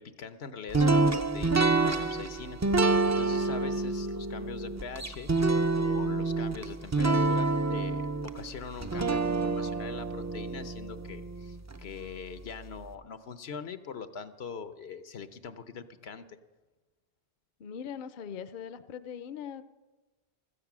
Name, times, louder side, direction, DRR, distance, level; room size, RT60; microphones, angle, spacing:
voice 1, 0.0-5.3 5.7-16.4, left 6 dB, 85° left, 11 dB, 1.1 m, -42 dB
sound 1, 0.7-11.8, right 3 dB, 25° right, 0.4 m, -28 dB
voice 2, 17.6-19.6, left 8 dB, 60° left, 13 dB, 0.7 m, -40 dB
15.5 x 13.5 x 6.1 m, 1.2 s
omnidirectional pair, 1.0 m